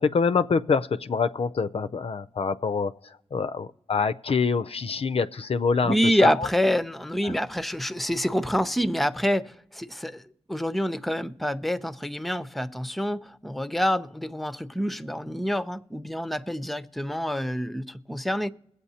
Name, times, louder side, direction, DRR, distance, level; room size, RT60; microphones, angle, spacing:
voice 1, 0.0-6.0 6.2-6.5 7.2-7.3, left 5 dB, 55° left, 0.4 m, -26 dB
voice 2, 5.8-10.2 10.5-18.5, equal, ahead, 0.5 m, -27 dB
21.5 x 7.9 x 2.8 m
cardioid pair, 45°, 12 cm